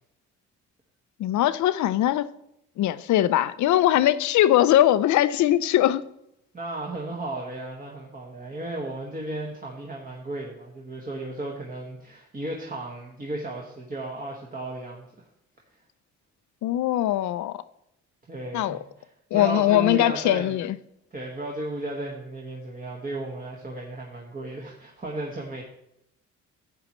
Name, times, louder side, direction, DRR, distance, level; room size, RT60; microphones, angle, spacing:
voice 1, 1.2-2.3 2.8-6.0 16.6-17.5 18.5-18.8 19.3-20.8, left 13 dB, 70° left, 0.5 m, -21 dB
voice 2, 6.5-15.3 18.3-19.1 19.3-20.6 21.1-25.6, right 2 dB, 30° right, 1.5 m, -34 dB
11.0 x 8.6 x 3.1 m
cardioid pair, 90°, 30 cm